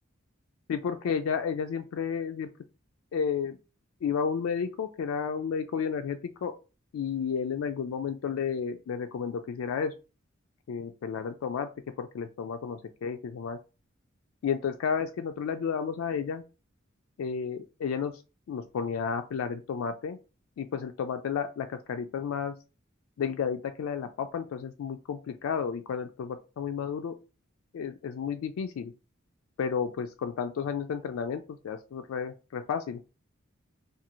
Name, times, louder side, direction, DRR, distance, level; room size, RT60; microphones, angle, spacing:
voice 1, 0.7-2.5 3.1-3.6 4.0-6.5 6.9-9.9 10.7-11.7 12.0-13.6 14.4-16.4 17.2-18.2 18.5-20.2 20.6-22.5 23.2-27.1 27.7-28.9 29.6-33.0, left 6 dB, 85° left, 7 dB, 0.3 m, -32 dB
2.6 x 2.3 x 2.9 m, 0.32 s
head